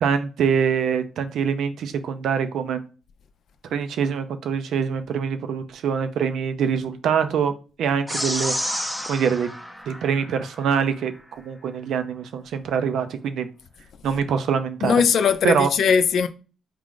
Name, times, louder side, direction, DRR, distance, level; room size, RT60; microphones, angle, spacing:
voice 1, 0.0-2.8 3.7-7.5 7.8-8.5 9.0-9.5 9.9-13.5 14.0-14.9 15.4-15.7, right 7 dB, 70° right, 0.5 m, -24 dB
sound 1, 8.1-10.7, equal, ahead, 0.6 m, -30 dB
voice 2, 14.8-16.3, left 6 dB, 65° left, 0.5 m, -19 dB
4.6 x 2.5 x 3.7 m
cardioid pair, 90°, 0 cm